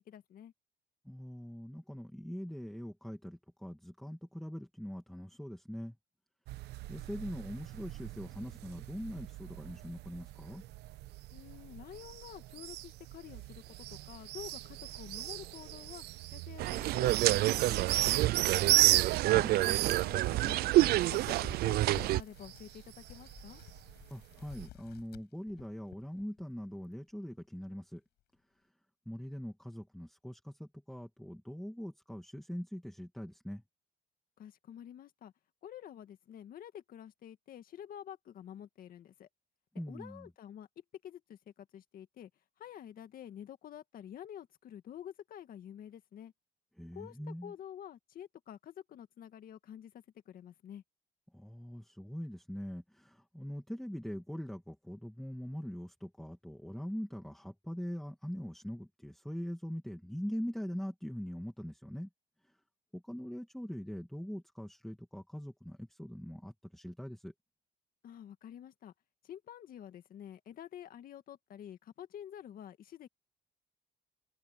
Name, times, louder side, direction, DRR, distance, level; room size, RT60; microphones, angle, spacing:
voice 1, 0.1-0.5 11.3-16.0 16.3-18.9 19.3-23.6 34.4-35.3 35.6-39.3 39.9-40.7 41.0-42.3 42.6-46.3 46.9-50.8 68.0-68.9 69.2-73.1, left 10 dB, 60° left, 2.0 m, -49 dB
voice 2, 1.0-6.0 6.9-10.6 19.3-19.5 24.1-28.0 29.1-33.6 39.8-40.3 46.8-47.5 51.3-62.1 62.9-67.3, equal, ahead, 2.4 m, -42 dB
sound 1, 6.5-24.7, right 16 dB, 80° right, 1.0 m, -36 dB
sound 2, 16.6-22.2, right 16 dB, 65° right, 0.4 m, -28 dB
sound 3, 20.7-26.5 26.8-27.1 27.6-27.7 28.2-28.3, left 15 dB, 75° left, 7.6 m, -54 dB
cardioid pair, 110°, 17 cm